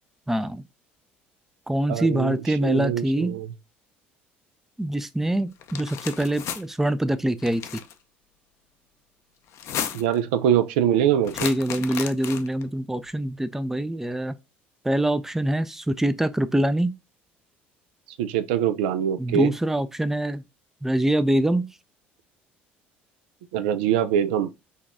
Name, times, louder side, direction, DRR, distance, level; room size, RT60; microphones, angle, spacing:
voice 1, 0.3-0.6 1.7-3.3 4.8-7.6 11.4-14.3 14.9-16.9 19.2-20.4 20.8-21.7, right 1 dB, 5° right, 0.4 m, -24 dB
voice 2, 1.9-3.5 9.9-11.5 18.2-19.5 23.5-24.5, right 10 dB, 75° right, 0.4 m, -23 dB
sound 1, 5.6-6.6 7.4-7.9 9.5-10.2 11.2-12.6, left 9 dB, 60° left, 0.5 m, -33 dB
4.0 x 2.3 x 3.5 m
hypercardioid pair, 65°, 6 cm